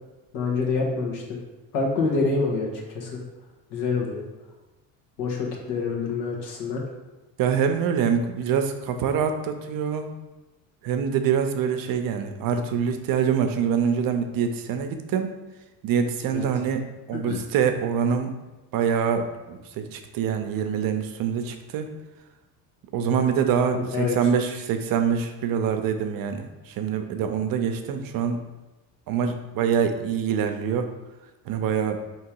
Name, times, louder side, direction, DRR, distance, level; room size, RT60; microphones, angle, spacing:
voice 1, 0.3-1.2 1.7-2.7 2.9-3.2 3.7-4.2 5.2-6.8 16.3-16.5 17.3-17.4 23.7-24.1, left 4 dB, 80° left, -2 dB, 1.3 m, -26 dB
voice 2, 7.4-10.1 10.8-15.3 15.8-18.3 18.7-21.9 22.9-28.4 29.1-30.9 31.5-32.0, right 7 dB, 60° right, 7 dB, 0.6 m, -25 dB
3.7 x 3.0 x 4.5 m, 1.1 s
supercardioid pair, 90°, 40 cm